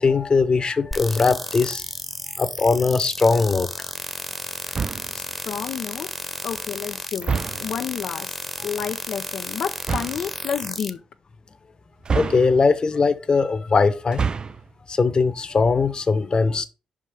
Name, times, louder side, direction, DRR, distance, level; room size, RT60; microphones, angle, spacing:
voice 1, 0.0-1.8 2.4-3.9 12.1-14.2 14.9-16.7, left 4 dB, 40° left, 1.0 m, -20 dB
sound 1, 0.9-10.9, equal, ahead, 1.0 m, -33 dB
sound 2, 4.7-5.2 7.2-7.8 9.8-10.3 12.0-12.8 14.0-14.7, right 5 dB, 40° right, 0.3 m, -27 dB
voice 2, 5.1-6.1 6.4-8.3 8.6-11.0, left 7 dB, 70° left, 0.5 m, -30 dB
5.3 x 5.1 x 5.4 m
supercardioid pair, 50°, 2 cm